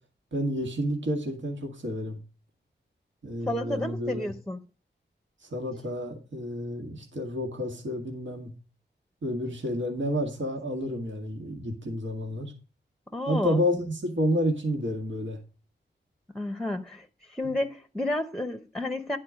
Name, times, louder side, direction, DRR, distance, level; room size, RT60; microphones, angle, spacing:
voice 1, 0.3-2.2 3.2-4.3 5.4-8.5 9.2-12.5 13.2-15.4 17.4-17.5, equal, 90° right, 1.8 m, -30 dB
voice 2, 3.5-4.6 13.1-13.6 16.3-19.2, left 1 dB, ahead, 0.7 m, -31 dB
10.5 x 4.4 x 6.2 m
wide cardioid pair, 105°, 19 cm